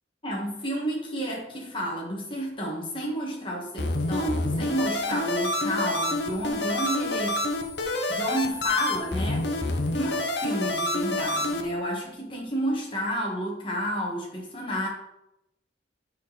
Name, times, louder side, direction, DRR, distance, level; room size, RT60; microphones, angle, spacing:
voice 1, 0.2-7.4 8.1-14.9, equal, 30° left, -2 dB, 2.0 m, -31 dB
sound 1, 3.8-11.6, left 1 dB, 65° left, 1.0 m, -28 dB
9.3 x 5.4 x 4.2 m, 0.85 s
head